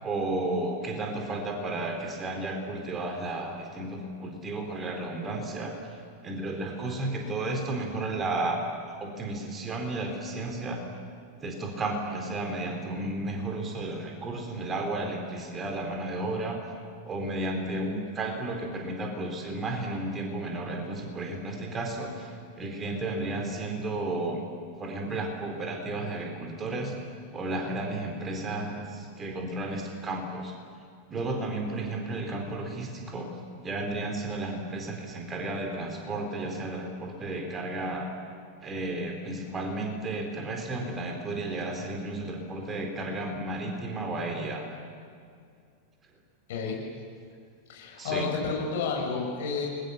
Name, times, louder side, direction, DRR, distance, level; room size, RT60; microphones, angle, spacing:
voice 1, 0.0-5.7 6.2-8.6 9.0-10.8 11.4-16.6 17.0-24.4 24.8-26.9 27.3-30.5 31.1-33.3 33.6-38.1 38.6-44.6 48.0-48.3, right 2 dB, 20° right, 2 dB, 4.3 m, -33 dB
voice 2, 47.7-49.7, left 5 dB, 55° left, 0 dB, 6.9 m, -30 dB
29.5 x 22.5 x 7.2 m, 2.3 s
figure-of-eight pair, 90°, 0 cm